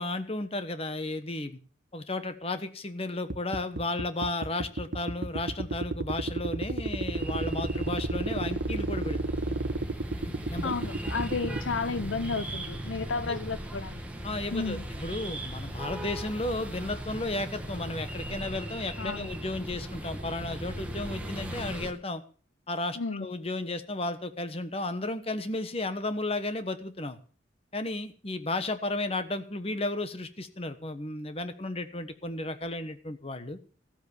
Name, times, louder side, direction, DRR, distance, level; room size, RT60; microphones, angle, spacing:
voice 1, 0.0-1.6 1.9-9.6 10.2-10.7 13.3-13.4 14.2-22.2 22.7-27.2 27.7-33.6, left 2 dB, 30° left, 1.2 m, -34 dB
sound 1, 3.3-11.6, right 2 dB, 60° right, 1.2 m, -33 dB
sound 2, 7.1-21.9, right 1 dB, 5° right, 1.7 m, -38 dB
voice 2, 10.6-14.0 14.5-14.8 19.0-19.3 23.0-23.3, left 4 dB, 85° left, 0.7 m, -32 dB
14.5 x 8.1 x 7.1 m
head